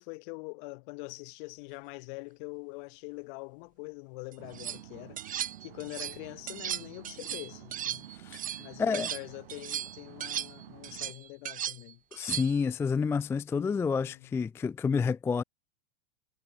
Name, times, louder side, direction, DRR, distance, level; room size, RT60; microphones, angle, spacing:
voice 1, 0.0-8.1 8.6-12.0 13.6-14.3, left 31 dB, 55° left, 7.6 m, -44 dB
sound 1, 4.3-4.8 5.2-6.2 6.5-9.2 9.5-12.7, right 10 dB, 25° right, 2.6 m, -37 dB
sound 2, 4.4-11.1, right 13 dB, 80° right, 6.8 m, -50 dB
voice 2, 12.1-15.4, left 5 dB, 10° left, 0.3 m, -29 dB
supercardioid pair, 130°, 29 cm